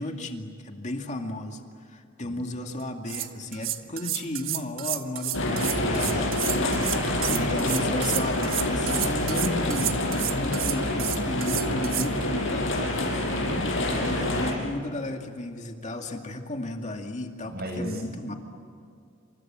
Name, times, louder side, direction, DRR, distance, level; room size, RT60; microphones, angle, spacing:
voice 1, 0.0-6.3 7.3-10.0 10.3-12.7 13.9-18.3, left 1 dB, 35° left, 3 dB, 2.3 m, -34 dB
voice 2, 2.2-2.6 6.7-7.1 13.4-14.6 17.4-18.0, equal, 50° right, 4 dB, 7.3 m, -37 dB
sound 1, 2.8-2.9 3.1-12.1, right 13 dB, 75° right, 1.4 m, -31 dB
sound 2, 5.3-14.5, left 1 dB, 65° left, 6.8 m, -27 dB
28.5 x 27.0 x 7.6 m, 2.4 s
head